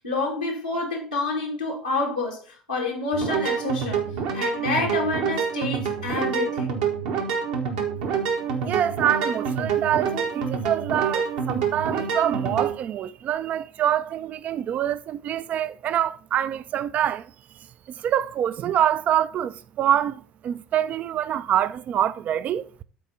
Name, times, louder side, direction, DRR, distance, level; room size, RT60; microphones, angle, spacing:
voice 1, 0.0-4.0 4.3-6.7, left 2 dB, 90° left, 1.4 m, -28 dB
sound 1, 3.1-12.7, right 6 dB, 65° right, 1.2 m, -27 dB
voice 2, 8.6-17.2 17.9-22.6, right 10 dB, 40° right, 0.4 m, -25 dB
7.6 x 4.2 x 5.2 m
figure-of-eight pair, 60°, 4 cm